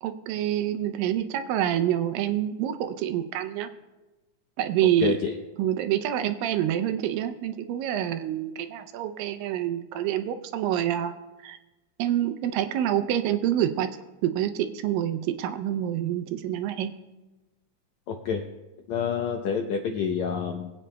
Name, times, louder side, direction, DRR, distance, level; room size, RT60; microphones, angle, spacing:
voice 1, 0.0-3.7 4.6-5.2 5.6-11.1 11.4-11.6 12.0-13.9 14.2-16.9, right 11 dB, 85° right, 10 dB, 2.3 m, -27 dB
voice 2, 5.0-5.3 18.1-18.4 18.9-20.7, left 6 dB, 80° left, 3 dB, 1.6 m, -28 dB
22.5 x 8.8 x 2.2 m, 1.1 s
omnidirectional pair, 4.0 m